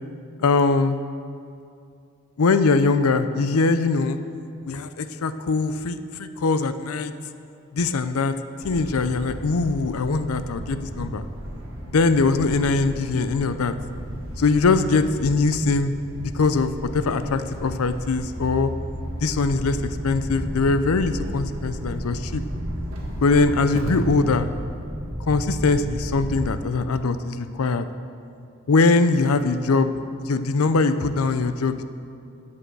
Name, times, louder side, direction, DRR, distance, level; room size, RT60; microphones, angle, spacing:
voice 1, 0.4-1.0 2.4-4.2 4.6-7.1 7.7-8.3 8.6-11.3 11.9-13.7 14.4-15.9 16.2-18.7 19.2-22.4 23.2-24.5 25.3-27.9 28.7-29.9 30.2-31.8, left 3 dB, 90° left, 11 dB, 0.5 m, -22 dB
sound 1, 8.6-26.5, equal, 75° right, 1.5 m, -33 dB
8.5 x 7.8 x 6.7 m, 2.5 s
head